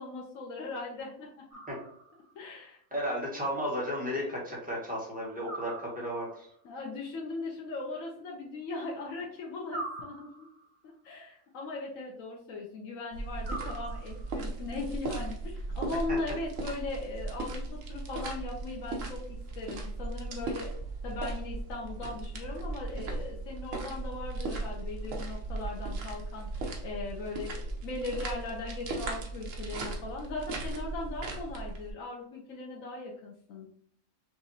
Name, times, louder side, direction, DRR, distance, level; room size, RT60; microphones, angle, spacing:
voice 1, 0.0-1.4 2.3-2.8 6.6-10.5 11.0-19.2 19.6-20.7 21.0-33.7, left 3 dB, 80° left, -2 dB, 1.3 m, -39 dB
sound 1, 1.5-2.3 5.4-6.5 9.7-10.8 13.4-14.4, right 2 dB, 35° right, 1.0 m, -42 dB
voice 2, 2.9-6.5 16.1-16.2, equal, 5° right, -4 dB, 1.5 m, -34 dB
sound 2, 13.1-31.9, right 2 dB, 75° right, 1.1 m, -37 dB
6.1 x 2.6 x 2.7 m, 0.66 s
omnidirectional pair, 1.4 m